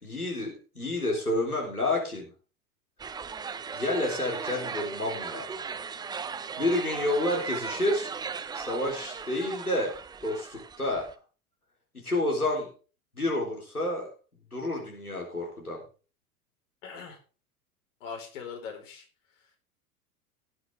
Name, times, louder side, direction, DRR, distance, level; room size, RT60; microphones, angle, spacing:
voice 1, 0.0-2.3 3.7-5.5 6.6-8.1 8.5-9.9 10.2-11.0 11.9-12.7 13.2-14.1 14.5-15.8, left 1 dB, 90° left, -2 dB, 3.9 m, -29 dB
sound 1, 3.0-11.1, right 6 dB, 10° right, 0.6 m, -37 dB
voice 2, 16.8-17.2 18.0-19.0, left 6 dB, 55° left, 2 dB, 4.8 m, -40 dB
18.5 x 7.9 x 3.7 m, 0.36 s
figure-of-eight pair, 85°, 43 cm